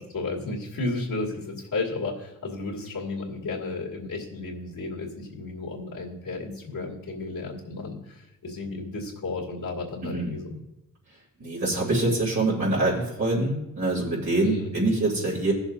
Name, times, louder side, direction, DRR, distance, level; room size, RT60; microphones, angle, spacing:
voice 1, 0.0-10.6 14.4-14.7, left 3 dB, 70° left, -3 dB, 2.3 m, -33 dB
voice 2, 10.0-10.3 11.4-15.5, right 2 dB, 55° right, -7 dB, 3.3 m, -25 dB
17.5 x 7.0 x 2.7 m, 0.91 s
cardioid pair, 80°, 34 cm